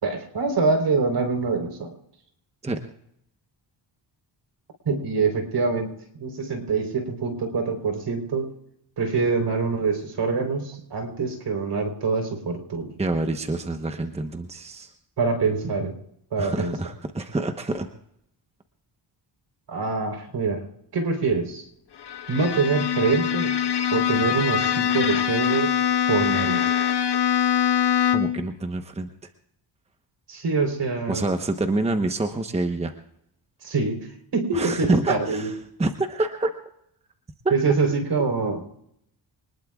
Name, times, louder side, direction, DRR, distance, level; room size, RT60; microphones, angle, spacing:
voice 1, 0.0-1.9 4.8-5.9 6.2-8.6 9.0-12.9 15.2-16.0 16.3-16.8 19.7-20.6 20.9-21.7 22.3-23.5 23.9-25.8 26.1-26.7 30.3-31.3 33.6-34.1 34.3-35.5 37.5-38.6, right 4 dB, 60° right, 4 dB, 4.0 m, -25 dB
voice 2, 13.0-14.9 16.4-17.9 28.1-29.1 31.1-33.0 34.5-36.6 37.4-37.5, right 2 dB, 15° right, 6 dB, 1.0 m, -27 dB
Bowed string instrument, 22.0-28.4, left 9 dB, 55° left, 1.3 m, -23 dB
25.5 x 20.0 x 2.4 m, 0.75 s
cardioid pair, 105°, 47 cm